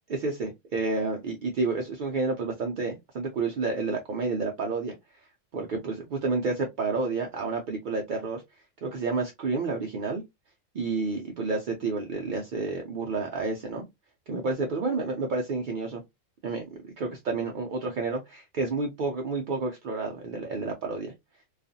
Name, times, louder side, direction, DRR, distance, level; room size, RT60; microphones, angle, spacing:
voice 1, 0.1-5.3 5.5-8.4 8.8-10.2 10.7-13.9 14.3-16.0 16.4-21.1, right 3 dB, 65° right, 0.5 m, -30 dB
2.4 x 2.4 x 2.5 m
omnidirectional pair, 1.3 m